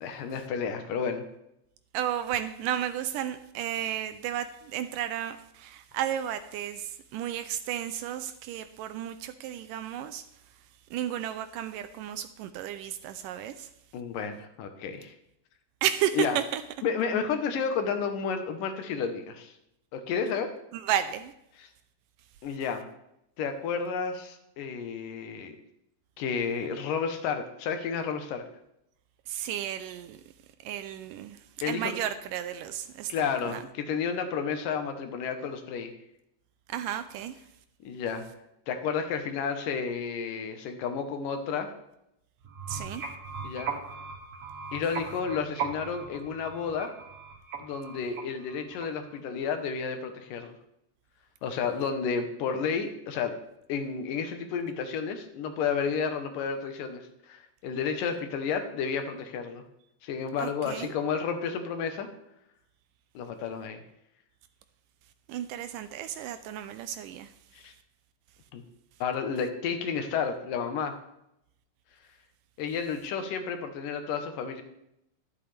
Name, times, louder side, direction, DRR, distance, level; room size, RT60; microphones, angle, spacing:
voice 1, 0.0-1.3 13.9-15.1 16.1-16.4 16.8-19.5 19.9-20.5 22.4-22.9 23.4-25.5 26.2-28.4 31.6-32.0 33.1-35.9 37.8-38.2 38.7-41.7 43.4-43.7 44.7-46.9 47.6-50.5 51.4-53.3 53.7-59.6 60.0-62.1 63.1-63.8 67.5-67.7 68.5-68.6 69.0-70.9 72.6-74.6, left 6 dB, 75° left, 2.7 m, -31 dB
voice 2, 1.9-10.2 10.9-13.7 15.8-16.6 20.7-21.3 29.3-30.2 30.6-33.6 36.7-37.4 42.7-43.0 60.4-60.9 65.3-67.3, right 11 dB, 80° right, 2.1 m, -33 dB
sound 1, 42.4-49.2, right 6 dB, 55° right, 2.6 m, -39 dB
11.5 x 11.5 x 3.4 m
omnidirectional pair, 4.0 m